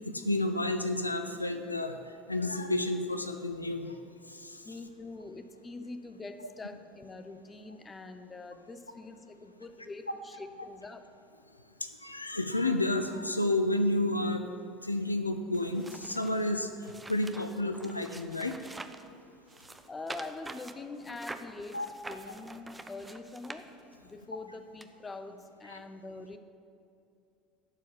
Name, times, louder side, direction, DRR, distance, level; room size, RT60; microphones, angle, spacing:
voice 1, 0.1-2.0 2.3-4.0 4.4-4.6 11.8-14.4 14.8-16.7 17.1-18.6 21.7-21.9 25.7-25.8, left 1 dB, 90° left, 7 dB, 0.4 m, -30 dB
voice 2, 4.6-11.1 19.9-23.7 24.0-26.4, left 3 dB, 20° left, 9 dB, 0.8 m, -44 dB
sound 1, 15.5-19.1 19.5-24.1 24.8-24.9, right 2 dB, 15° right, 0.6 m, -46 dB
12.0 x 4.8 x 7.9 m, 2.5 s
figure-of-eight pair, 70°, 0 cm